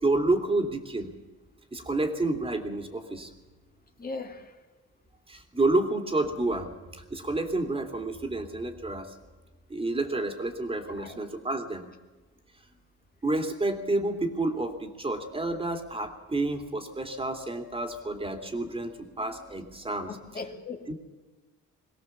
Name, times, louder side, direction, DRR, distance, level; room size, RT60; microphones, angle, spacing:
voice 1, 0.0-1.1 1.7-3.3 5.3-6.7 7.0-9.1 9.7-11.8 13.2-20.1 20.9-21.0, right 2 dB, 20° right, 5 dB, 2.7 m, -29 dB
voice 2, 4.0-4.5 11.0-11.2 20.1-20.9, left 3 dB, 30° left, 4 dB, 2.4 m, -38 dB
22.5 x 16.5 x 7.3 m, 1.2 s
cardioid pair, 90°, 30 cm